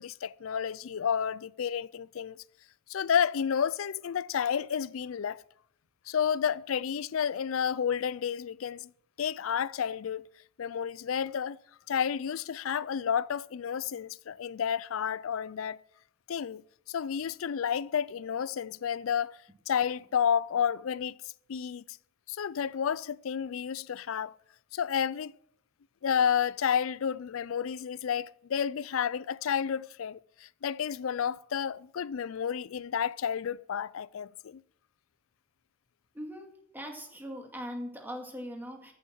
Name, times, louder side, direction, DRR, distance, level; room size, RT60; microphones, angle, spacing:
voice 1, 0.0-2.4 2.9-5.4 6.1-8.9 9.2-10.3 10.6-11.6 11.9-15.8 16.3-19.4 19.7-21.2 21.5-21.8 22.3-24.3 24.7-25.3 26.0-34.6, left 8 dB, 85° left, 0.4 m, -31 dB
voice 2, 36.1-38.9, equal, 10° right, 2.2 m, -40 dB
14.0 x 7.2 x 6.3 m
head